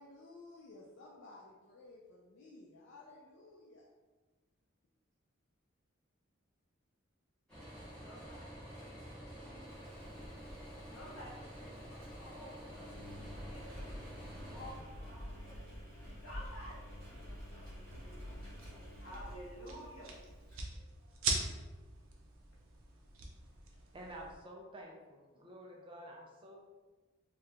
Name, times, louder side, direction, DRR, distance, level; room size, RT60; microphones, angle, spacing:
voice 1, 0.0-3.8, left 2 dB, 55° left, -4 dB, 0.4 m, -55 dB
sound 1, 7.5-14.7, equal, 5° left, 1.3 m, -49 dB
voice 2, 8.0-9.7 10.7-15.8 16.2-20.1, equal, 75° left, -4 dB, 1.0 m, -53 dB
Engine, 9.7-20.6, equal, 50° right, 1.3 m, -49 dB
sound 2, 17.6-24.3, right 3 dB, 90° right, 0.6 m, -43 dB
voice 3, 23.9-26.6, right 1 dB, 25° right, 0 dB, 0.4 m, -50 dB
2.8 x 2.4 x 3.3 m, 1.3 s
head